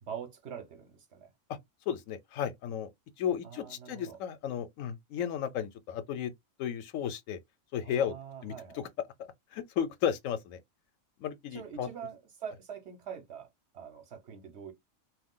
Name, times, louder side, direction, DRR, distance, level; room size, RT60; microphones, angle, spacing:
voice 1, 0.0-1.3 3.4-4.2 7.8-8.9 11.5-14.7, right 7 dB, 60° right, 1.0 m, -44 dB
voice 2, 1.9-2.9 3.2-6.3 6.6-7.4 7.7-8.1 8.4-8.8 9.2-10.6 11.2-11.9, left 9 dB, 75° left, 1.0 m, -34 dB
2.5 x 2.3 x 3.6 m
omnidirectional pair, 1.4 m